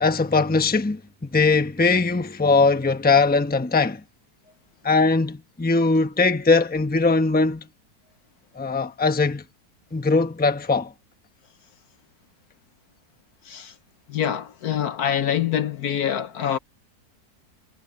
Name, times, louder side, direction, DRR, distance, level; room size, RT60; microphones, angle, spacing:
voice 1, 0.0-4.0 4.8-7.7 8.6-9.4 9.9-10.9, left 3 dB, 5° left, 0.9 m, -20 dB
voice 2, 13.4-13.7 14.1-16.6, left 9 dB, 65° left, 1.2 m, -25 dB
omnidirectional pair, 1.9 m